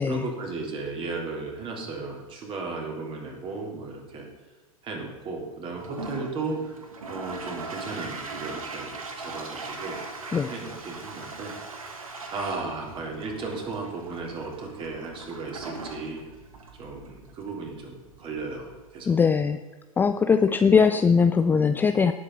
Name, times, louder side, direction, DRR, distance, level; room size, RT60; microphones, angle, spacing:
voice 1, 0.1-4.3 4.8-10.0 10.5-11.6 12.3-16.2 16.8-19.2, right 3 dB, 30° right, 0 dB, 3.6 m, -35 dB
Toilet flush, 5.7-18.9, right 3 dB, 70° right, 1.9 m, -40 dB
voice 2, 19.1-19.6 20.0-22.1, left 5 dB, 10° left, 9 dB, 0.4 m, -20 dB
18.0 x 8.4 x 4.0 m, 1.3 s
figure-of-eight pair, 95°, 18 cm